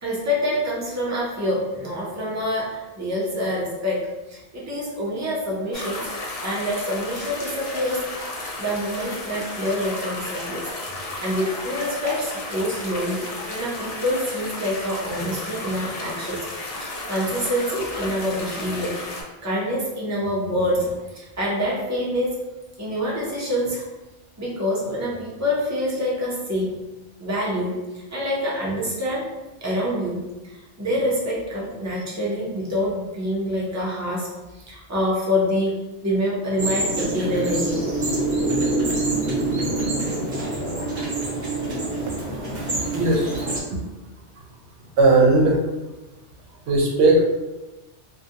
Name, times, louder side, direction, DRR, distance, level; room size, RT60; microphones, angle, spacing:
voice 1, 0.0-6.0 6.4-8.1 8.6-10.6 11.0-19.0 19.4-22.3 22.8-23.8 24.4-26.7 27.2-29.3 29.6-34.3 34.5-35.7 36.0-37.9, equal, 25° right, -5 dB, 0.4 m, -26 dB
sound 1, 5.7-19.2, left 2 dB, 55° left, 0.4 m, -33 dB
sound 2, 36.6-43.6, right 2 dB, 45° right, 1.0 m, -25 dB
voice 2, 42.9-43.4 43.7-43.8 45.0-45.6 46.7-47.2, right 2 dB, 75° right, 0 dB, 0.8 m, -17 dB
2.3 x 2.2 x 2.7 m, 1.0 s
omnidirectional pair, 1.2 m